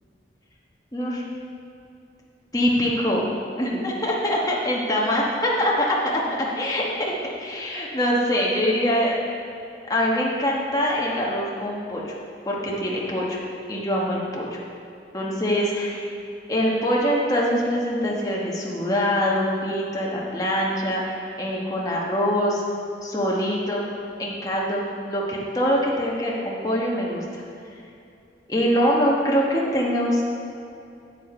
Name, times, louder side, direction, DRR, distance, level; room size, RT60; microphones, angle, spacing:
voice 1, 0.9-1.3 2.5-3.3 3.6-7.1 7.4-9.2 9.9-12.1 12.4-13.4 13.7-14.6 15.1-16.1 16.5-22.6 23.0-23.9 24.2-27.4 28.5-30.2, equal, 20° left, -4 dB, 1.2 m, -24 dB
8.5 x 7.3 x 4.3 m, 2.6 s
head